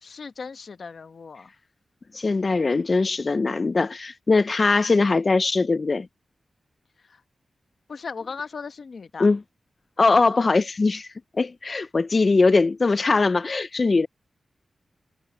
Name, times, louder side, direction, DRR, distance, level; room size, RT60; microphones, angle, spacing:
voice 1, 0.0-1.5 7.0-7.2 7.9-9.3, left 5 dB, 55° left, 1.0 m, -37 dB
voice 2, 2.1-6.1 9.2-9.4 10.0-11.1 11.3-14.1, left 3 dB, 35° left, 0.4 m, -21 dB
wide cardioid pair, 150°, 0 cm